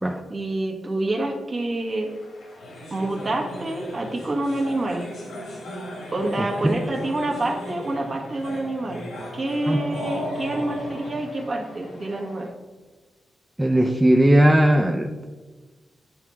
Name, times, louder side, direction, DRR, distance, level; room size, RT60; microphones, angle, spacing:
voice 1, 0.3-2.1 2.9-5.1 6.1-9.1 9.3-12.5, right 2 dB, 50° right, 0 dB, 1.3 m, -27 dB
sound 1, 1.7-12.5, equal, 85° left, 1.6 m, -37 dB
voice 2, 13.6-15.1, right 1 dB, 15° right, 3 dB, 0.5 m, -17 dB
8.7 x 3.4 x 3.1 m, 1.3 s
supercardioid pair, 50°, 0 cm